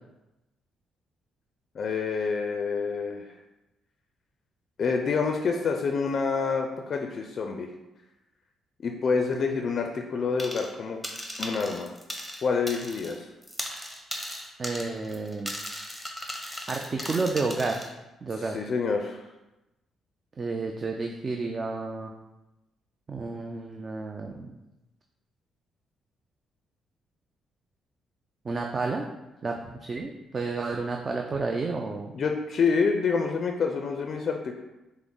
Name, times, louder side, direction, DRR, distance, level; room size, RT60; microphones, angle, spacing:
voice 1, 1.7-3.4 4.8-7.7 8.8-11.0 11.4-11.9 12.4-13.3 18.4-19.2 32.1-34.6, left 5 dB, 50° left, 3 dB, 0.4 m, -27 dB
sound 1, 10.4-10.8 11.0-13.2 13.4-17.9, equal, ahead, 0.8 m, -37 dB
voice 2, 14.6-15.5 16.7-17.8 18.2-18.6 20.4-22.1 23.1-24.5 28.4-29.1 29.4-32.1, right 3 dB, 35° right, 2 dB, 0.4 m, -31 dB
5.8 x 2.0 x 3.8 m, 1.0 s
cardioid pair, 90°, 0 cm